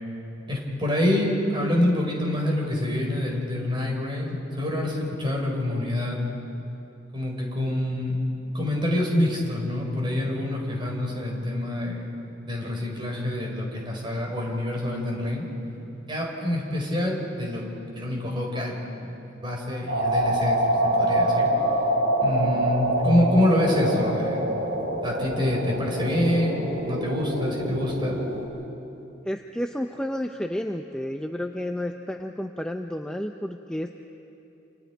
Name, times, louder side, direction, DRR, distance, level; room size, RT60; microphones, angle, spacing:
voice 1, 0.5-6.2 7.1-8.2 8.5-12.1 12.4-15.4 16.1-17.6 17.9-20.6 21.0-21.5 22.2-24.5 25.0-28.2, left 1 dB, 25° right, -1 dB, 4.7 m, -26 dB
sound 1, 19.9-28.4, right 1 dB, 75° right, 5.8 m, -25 dB
voice 2, 29.3-34.0, left 1 dB, 5° left, 4 dB, 0.6 m, -31 dB
28.0 x 27.5 x 4.6 m, 2.9 s
head